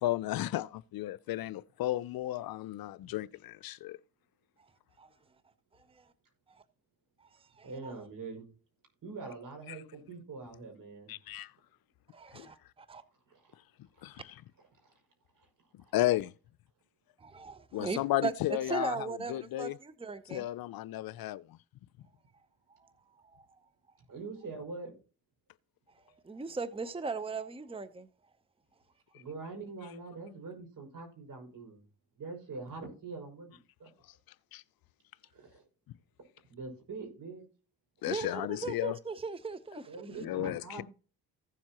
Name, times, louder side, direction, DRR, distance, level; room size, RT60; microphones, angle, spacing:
voice 1, 0.0-4.0 9.7-9.8 11.1-11.5 12.3-12.5 14.0-14.2 15.9-16.3 17.7-19.8 20.3-21.6 34.5-34.6 38.0-39.0 40.2-40.8, left 15 dB, 65° left, 0.5 m, -33 dB
voice 2, 5.7-6.1 6.5-6.6 7.2-7.9 12.1-13.0 17.2-18.3 18.7-20.5 22.8-22.9 23.2-23.5 26.1-28.1 38.1-40.2, right 4 dB, 15° right, 0.8 m, -39 dB
voice 3, 7.6-8.5 9.0-11.2 13.3-13.6 13.9-14.3 14.8-14.9 15.3-15.5 15.8-15.9 24.1-24.9 29.1-31.8 32.2-33.9 35.3-35.6 36.5-37.4 39.9-40.8, right 3 dB, 55° right, 6.1 m, -44 dB
15.5 x 7.3 x 3.0 m
supercardioid pair, 55°, 39 cm